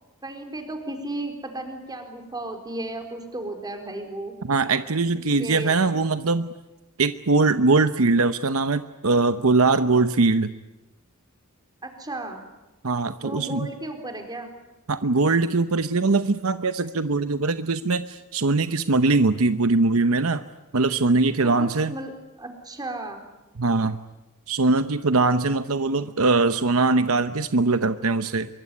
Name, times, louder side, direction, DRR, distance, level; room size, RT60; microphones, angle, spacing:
voice 1, 0.2-4.4 5.4-5.8 11.8-12.4 13.2-14.5 21.4-23.3, right 1 dB, 20° right, 5 dB, 4.2 m, -34 dB
voice 2, 4.4-6.5 7.0-10.5 12.8-13.7 14.9-20.4 20.7-21.9 23.6-24.0 24.5-28.5, right 3 dB, 70° right, 11 dB, 0.9 m, -21 dB
25.0 x 23.5 x 9.8 m, 1.0 s
head